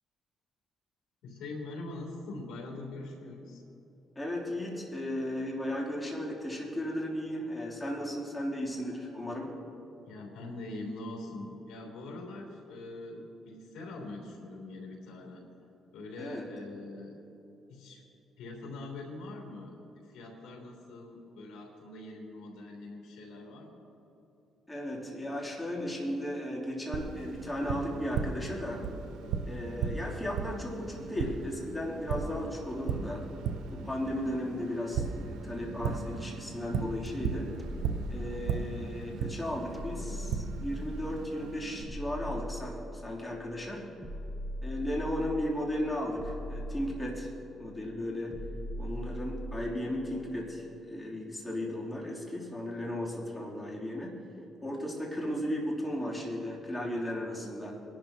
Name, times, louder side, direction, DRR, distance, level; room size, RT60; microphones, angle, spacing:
voice 1, 1.2-3.6 10.0-15.4 15.9-17.2 17.7-18.0 18.4-23.8, left 2 dB, 90° left, 0 dB, 3.3 m, -43 dB
voice 2, 4.1-9.5 16.2-16.4 24.7-28.9 29.4-33.3 33.7-37.6 38.1-43.9 44.6-47.3 47.6-48.4 48.8-54.2 54.6-57.7, left 1 dB, 15° left, -4 dB, 3.3 m, -35 dB
Tap, 26.9-41.8, right 5 dB, 90° right, 0.7 m, -37 dB
sound 1, 37.6-38.9 39.7-41.4 41.9-43.3 44.0-45.6 46.2-47.6 48.3-49.9, equal, 10° right, 1.6 m, -40 dB
22.0 x 11.5 x 3.0 m, 3.0 s
cardioid pair, 90°, 0 cm